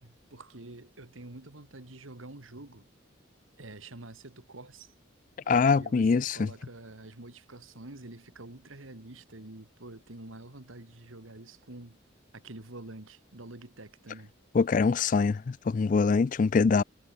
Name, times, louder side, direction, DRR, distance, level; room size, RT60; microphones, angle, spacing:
voice 1, 0.0-2.9 3.6-4.9 5.8-12.0 12.3-14.3, right 2 dB, 90° right, 2.2 m, -47 dB
voice 2, 5.5-6.5 14.5-16.8, left 5 dB, 40° left, 0.3 m, -24 dB
head